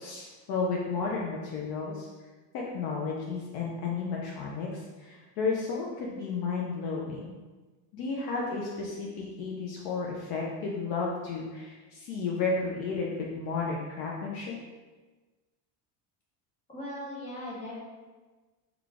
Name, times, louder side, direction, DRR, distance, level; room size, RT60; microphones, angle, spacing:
voice 1, 0.0-2.1 2.5-7.3 7.9-14.6, left 4 dB, 55° left, -3 dB, 0.5 m, -33 dB
voice 2, 16.7-17.8, left 1 dB, 15° left, -7 dB, 0.8 m, -38 dB
3.7 x 2.4 x 3.4 m, 1.3 s
cardioid pair, 170°, 47 cm